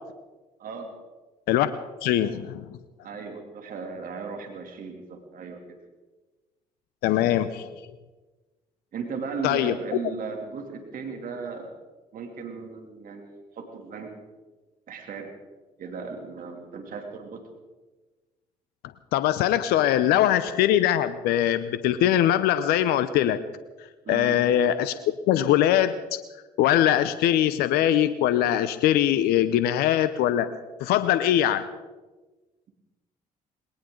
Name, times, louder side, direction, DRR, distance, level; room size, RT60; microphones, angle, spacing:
voice 1, 0.6-0.9 3.0-5.6 8.9-11.7 12.1-14.1 14.9-15.3 15.8-17.5 24.0-24.4, right 5 dB, 60° right, 4 dB, 2.9 m, -36 dB
voice 2, 2.0-2.7 7.0-7.7 9.4-9.7 19.1-23.4 24.1-24.9 25.3-26.1 26.6-30.5 30.8-31.7, left 11 dB, 75° left, 13 dB, 0.7 m, -22 dB
20.0 x 18.5 x 3.9 m, 1.2 s
hypercardioid pair, 60°, 16 cm